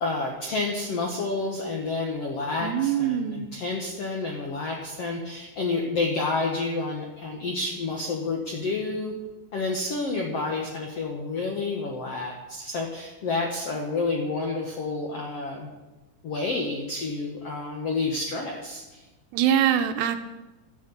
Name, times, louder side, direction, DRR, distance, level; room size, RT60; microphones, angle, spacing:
voice 1, 0.0-9.1 9.5-15.7 16.2-19.0, left 3 dB, 80° left, 0 dB, 1.4 m, -29 dB
voice 2, 2.6-3.5 19.3-20.2, right 10 dB, 85° right, 7 dB, 2.8 m, -23 dB
12.5 x 8.4 x 8.1 m, 1.1 s
omnidirectional pair, 4.8 m